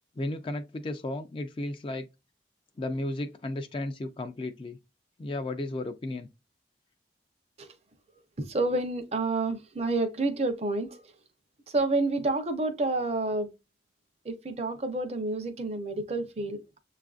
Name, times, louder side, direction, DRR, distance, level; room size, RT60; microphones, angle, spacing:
voice 1, 0.2-2.1 2.8-4.8 5.2-6.3, left 2 dB, 30° left, 0.3 m, -34 dB
voice 2, 8.4-11.0 11.7-13.5 14.2-16.8, right 2 dB, 35° right, 0.6 m, -29 dB
7.2 x 2.4 x 2.4 m
head